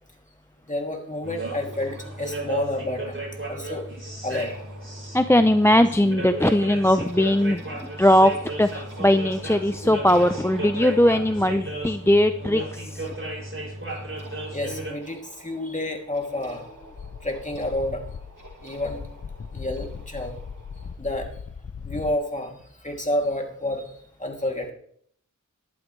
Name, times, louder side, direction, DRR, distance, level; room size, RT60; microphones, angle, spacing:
voice 1, 0.7-3.2 3.5-3.9 4.2-4.5 14.5-16.7 17.2-18.0 18.6-19.0 19.5-20.3 21.0-21.3 21.8-23.9 24.2-24.7, left 1 dB, 25° left, 2 dB, 2.8 m, -29 dB
sound 1, 1.2-14.9, right 1 dB, 40° right, 6.5 m, -34 dB
sound 2, 1.7-21.0, right 2 dB, 75° right, 2.7 m, -48 dB
voice 2, 5.1-13.1, left 1 dB, 10° left, 10 dB, 0.5 m, -20 dB
sound 3, 16.8-22.2, left 6 dB, 50° left, 0.6 m, -39 dB
14.5 x 11.5 x 3.3 m, 0.62 s
wide cardioid pair, 45°, 32 cm